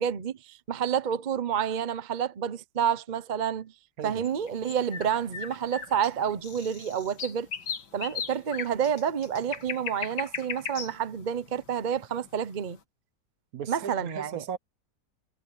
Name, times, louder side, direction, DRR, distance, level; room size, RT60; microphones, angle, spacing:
voice 1, 0.0-3.7 4.0-7.5 7.9-12.8 13.7-14.4, right 8 dB, 40° right, 0.7 m, -29 dB
sound 1, 4.2-12.5, left 6 dB, 75° left, 2.5 m, -38 dB
voice 2, 13.5-14.6, right 8 dB, 60° right, 1.2 m, -37 dB
omnidirectional pair, 1.8 m